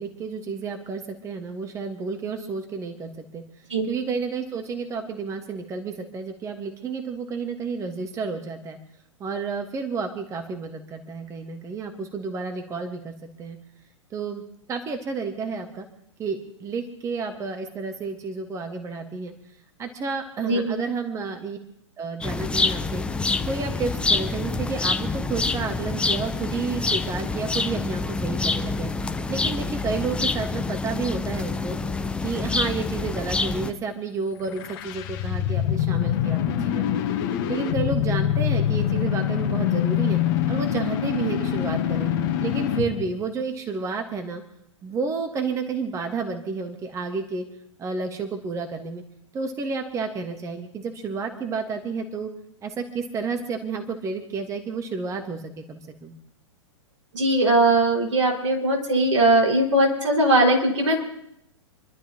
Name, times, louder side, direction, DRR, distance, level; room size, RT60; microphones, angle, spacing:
voice 1, 0.0-8.8 9.2-13.6 14.1-14.4 14.7-15.9 16.2-21.6 22.0-23.0 23.5-31.8 32.2-40.2 40.5-42.1 42.4-44.4 44.8-47.4 47.8-49.0 49.3-52.3 52.6-56.1, right 4 dB, 20° right, 5 dB, 1.4 m, -31 dB
voice 2, 20.4-20.8 57.1-61.0, right 1 dB, 75° right, -1 dB, 5.1 m, -20 dB
sound 1, 22.2-33.7, left 3 dB, 5° left, 0.6 m, -27 dB
sound 2, 34.4-43.0, left 10 dB, 45° left, 1.4 m, -24 dB
28.0 x 12.0 x 2.9 m, 0.77 s
figure-of-eight pair, 105°, 16 cm